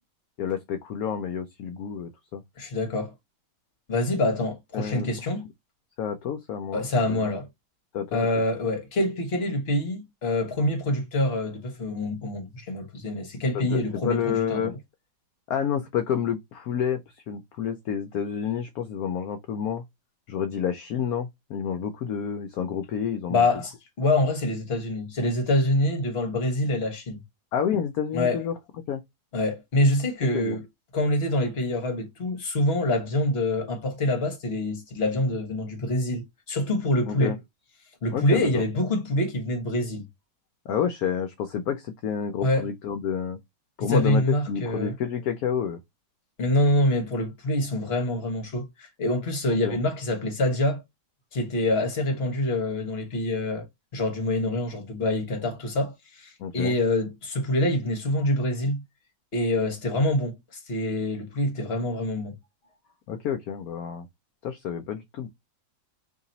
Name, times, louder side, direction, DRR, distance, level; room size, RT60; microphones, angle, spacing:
voice 1, 0.4-2.4 4.7-5.1 6.0-7.2 7.9-8.3 13.5-14.7 15.5-17.0 17.3-19.8 20.3-23.4 27.5-28.5 28.9-29.0 30.3-30.6 37.1-37.4 38.1-38.6 40.7-43.4 43.8-45.8 49.5-49.8 56.4-56.7 63.1-64.1 64.4-65.3, left 8 dB, 70° left, 1.0 m, -29 dB
voice 2, 2.6-3.1 3.9-5.5 6.7-7.5 8.1-14.7 23.3-27.2 28.1-28.4 29.3-30.6 30.9-37.3 38.0-40.1 42.4-42.7 43.8-44.9 46.4-50.8 51.3-53.6 53.9-58.8 59.3-60.4 60.7-62.4, left 1 dB, 40° left, 1.3 m, -26 dB
2.9 x 2.9 x 3.9 m
omnidirectional pair, 1.9 m